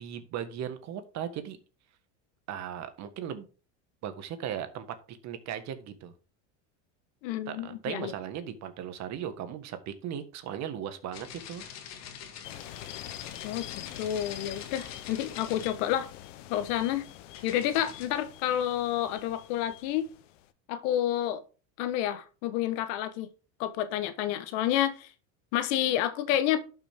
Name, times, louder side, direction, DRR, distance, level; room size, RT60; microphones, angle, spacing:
voice 1, 0.0-1.6 2.5-3.5 4.0-6.1 7.5-11.6, right 9 dB, 50° right, 1.7 m, -37 dB
voice 2, 7.2-8.1 13.4-16.1 16.5-17.0 17.4-20.1 20.7-21.4 21.8-23.3 23.6-25.1 25.5-26.6, left 11 dB, 70° left, 1.4 m, -29 dB
sound 1, 11.1-18.1, left 8 dB, 45° left, 1.9 m, -45 dB
sound 2, 12.4-20.5, left 14 dB, 90° left, 0.9 m, -46 dB
11.5 x 6.2 x 3.6 m
supercardioid pair, 120°, 36 cm